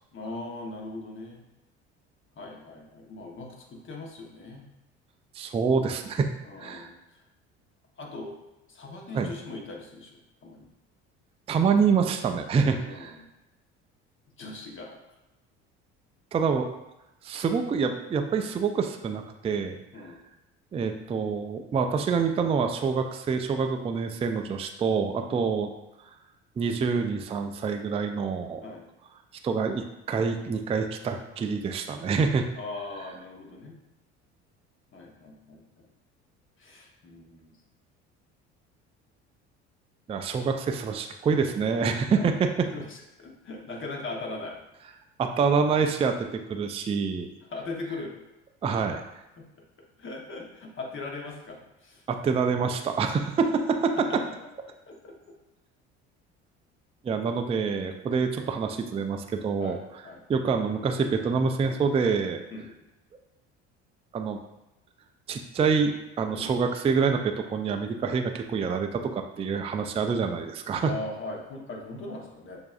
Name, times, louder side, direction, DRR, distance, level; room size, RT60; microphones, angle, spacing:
voice 1, 0.1-1.4 2.4-4.7 6.4-7.2 8.0-8.4 8.7-10.7 12.7-13.3 14.4-15.0 19.9-20.2 25.3-25.5 28.6-28.9 32.6-33.8 34.9-35.6 36.6-37.6 42.1-42.3 42.7-44.6 47.5-48.2 49.4-49.5 50.0-52.0 54.1-54.2 54.9-55.4 59.6-59.8 60.0-60.2 62.5-62.7 66.3-66.5 70.8-72.6, left 2 dB, 35° left, 0 dB, 1.1 m, -39 dB
voice 2, 5.3-6.3 6.6-6.9 9.1-9.3 11.5-13.2 16.3-16.7 17.2-19.8 20.7-25.7 26.6-28.6 29.4-32.5 40.1-42.7 45.2-47.3 48.6-49.0 52.1-54.2 57.0-59.8 60.3-62.4 64.1-64.4 65.3-70.9, right 5 dB, 20° right, 5 dB, 0.4 m, -26 dB
6.6 x 2.6 x 2.4 m, 0.94 s
hypercardioid pair, 70°, 33 cm